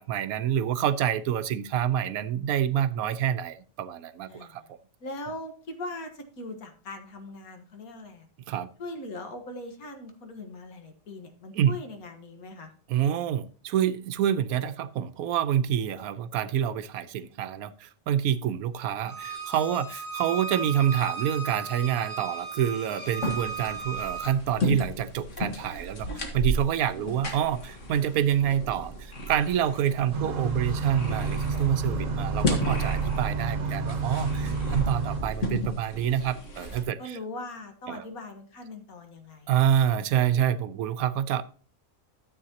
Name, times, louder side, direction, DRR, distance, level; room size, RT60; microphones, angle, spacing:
voice 1, 0.0-4.6 8.5-8.7 11.6-11.7 12.9-37.2 37.9-38.0 39.5-41.4, right 10 dB, 85° right, 14 dB, 1.1 m, -27 dB
voice 2, 4.3-4.7 5.0-8.3 8.8-12.7 26.8-27.2 29.5-30.3 34.4-34.6 37.0-39.7, left 2 dB, 85° left, 5 dB, 1.9 m, -41 dB
Bowed string instrument, 19.1-24.3, right 5 dB, 30° left, 2.3 m, -36 dB
sound 1, 23.2-36.8, equal, 60° left, 1.8 m, -33 dB
sound 2, 30.1-35.2, right 4 dB, 65° right, 1.5 m, -30 dB
12.5 x 7.7 x 2.9 m, 0.40 s
omnidirectional pair, 1.5 m